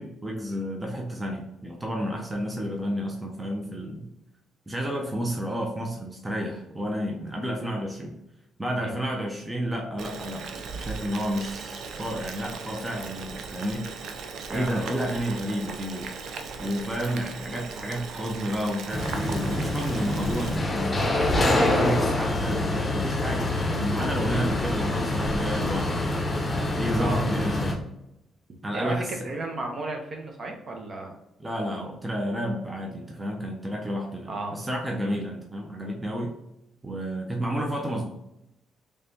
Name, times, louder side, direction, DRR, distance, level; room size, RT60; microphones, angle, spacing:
voice 1, 0.0-4.1 4.7-8.2 8.6-10.5 10.7-13.9 14.5-16.1 16.6-21.0 21.7-26.0 26.7-27.8 28.6-29.1 31.4-36.3 36.8-38.1, equal, 15° right, 0 dB, 0.6 m, -31 dB
Boiling, 10.0-20.6, right 5 dB, 70° right, 0.5 m, -38 dB
voice 2, 14.5-15.0 21.4-22.1 27.0-27.2 28.7-31.2 34.3-34.6 35.0-35.3, right 2 dB, 45° right, 2 dB, 0.9 m, -33 dB
sound 1, 18.9-27.7, left 2 dB, 25° left, 0.8 m, -26 dB
3.4 x 3.2 x 2.7 m, 0.86 s
cardioid pair, 90°, 0 cm